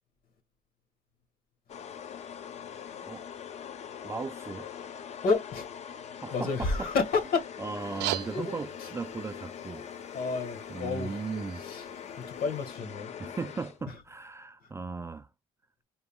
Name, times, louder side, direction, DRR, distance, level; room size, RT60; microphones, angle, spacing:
sound 1, 1.7-14.1, left 8 dB, 40° left, 0.5 m, -43 dB
voice 1, 4.0-4.7 6.2-6.9 7.6-10.2 10.7-11.7 13.2-15.3, right 4 dB, 15° right, 0.3 m, -37 dB
voice 2, 5.2-5.7 6.3-7.5 7.7-7.9 8.3-8.9 10.1-11.2 11.6-11.9 12.2-13.1 13.9-14.0 14.6-14.7, left 4 dB, 60° left, 1.6 m, -30 dB
sound 2, 7.8-12.8, right 15 dB, 80° right, 0.4 m, -41 dB
3.9 x 2.3 x 3.5 m
cardioid pair, 110°, 17 cm